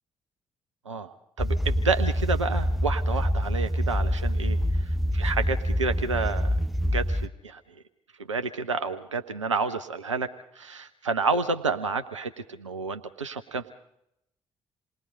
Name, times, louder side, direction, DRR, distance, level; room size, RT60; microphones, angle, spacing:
voice 1, 0.9-4.6 5.1-6.5 6.9-7.6 8.3-10.3 10.6-13.7, right 4 dB, 85° right, 9 dB, 0.7 m, -29 dB
sound 1, 1.4-7.3, equal, ahead, 0.9 m, -26 dB
28.0 x 21.0 x 5.3 m, 0.78 s
figure-of-eight pair, 40°, 15 cm